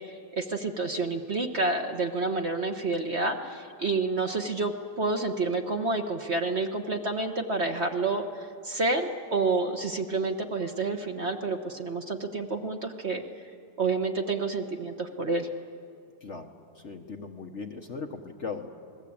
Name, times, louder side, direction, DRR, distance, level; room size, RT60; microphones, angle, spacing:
voice 1, 0.0-13.2 13.8-15.5, right 3 dB, 40° right, 4 dB, 1.3 m, -29 dB
voice 2, 16.2-18.7, left 4 dB, 45° left, 4 dB, 1.3 m, -38 dB
28.0 x 20.5 x 8.7 m, 2.6 s
omnidirectional pair, 2.0 m